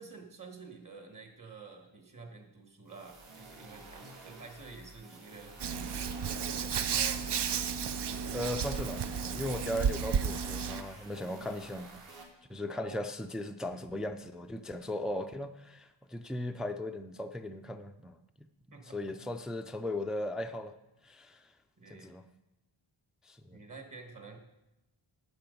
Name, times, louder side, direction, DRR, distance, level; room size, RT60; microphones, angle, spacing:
voice 1, 0.0-5.9 6.3-7.2 12.7-13.0 18.7-19.0 21.8-22.1 23.5-24.4, right 4 dB, 40° right, 3 dB, 1.6 m, -49 dB
sound 1, 2.9-12.2, right 3 dB, 80° right, 2.0 m, -51 dB
Hands, 5.6-10.8, right 7 dB, 55° right, 0.6 m, -33 dB
voice 2, 8.3-11.9 12.5-18.2 18.9-20.7 21.0-21.4 21.9-22.3 23.3-23.6, left 1 dB, ahead, 6 dB, 0.4 m, -37 dB
10.5 x 7.3 x 5.2 m, 0.94 s
wide cardioid pair, 135°, 49 cm